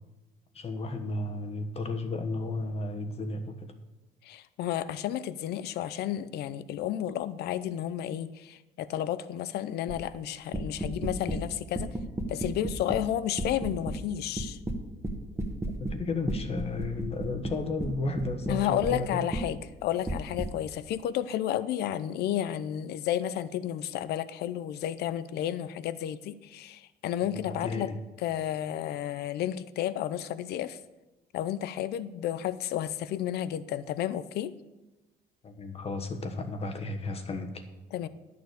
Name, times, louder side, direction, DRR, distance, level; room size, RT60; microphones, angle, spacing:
voice 1, 0.5-3.7 15.4-15.5 15.8-19.3 27.4-28.0 35.4-37.6, left 2 dB, 35° left, 7 dB, 1.3 m, -33 dB
voice 2, 4.2-11.9 12.3-14.6 18.5-27.9 28.2-30.8 31.3-34.5 37.9-38.1, left 11 dB, 75° left, 15 dB, 0.6 m, -32 dB
sound 1, 9.9-10.1 10.5-11.4 11.7-13.1 13.4-14.0 14.4-16.0 16.3-19.0 19.3-19.5 20.1-20.5, right 1 dB, 15° right, 1.3 m, -32 dB
10.5 x 6.8 x 6.5 m, 1.1 s
cardioid pair, 110°, 17 cm